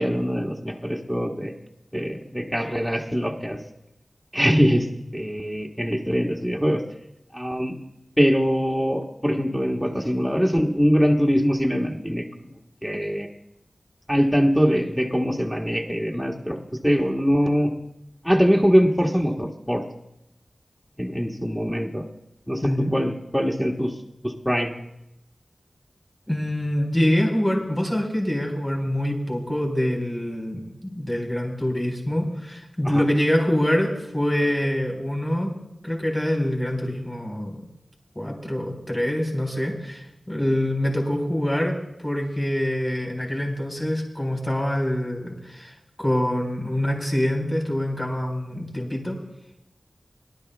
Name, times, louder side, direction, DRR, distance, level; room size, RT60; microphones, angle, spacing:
voice 1, 0.0-1.5 1.9-3.6 4.3-4.9 5.1-6.8 7.3-7.8 8.2-12.2 12.8-13.3 14.1-16.6 16.8-17.7 18.2-19.8 21.0-22.0 22.5-23.9 24.2-24.7 32.8-33.0, equal, 5° left, 0 dB, 1.5 m, -22 dB
voice 2, 26.3-35.5 35.8-37.6 38.2-49.2, left 1 dB, 20° left, 0 dB, 3.9 m, -25 dB
18.5 x 11.5 x 3.4 m, 0.84 s
cardioid pair, 45°, 0 cm